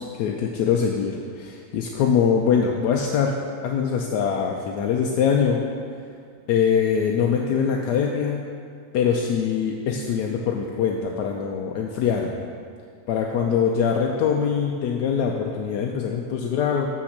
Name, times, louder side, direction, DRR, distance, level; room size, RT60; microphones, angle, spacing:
voice 1, 0.0-3.3 3.6-5.6 6.5-8.5 8.9-12.4 13.1-16.9, left 7 dB, 80° left, 1 dB, 1.2 m, -23 dB
7.1 x 5.9 x 6.6 m, 2.1 s
omnidirectional pair, 1.7 m